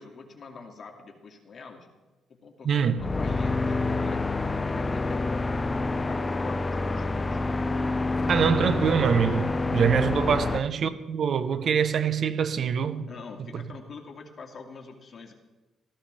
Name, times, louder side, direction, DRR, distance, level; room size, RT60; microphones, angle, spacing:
voice 1, 0.0-1.9 2.3-7.4 10.2-10.6 13.0-15.3, left 4 dB, 45° left, 2.3 m, -45 dB
voice 2, 2.6-3.0 8.3-13.1 13.5-13.6, right 7 dB, 55° right, 1.0 m, -24 dB
sound 1, 3.0-10.6, left 3 dB, 25° left, 0.7 m, -27 dB
17.5 x 13.5 x 3.4 m
cardioid pair, 90°, 0 cm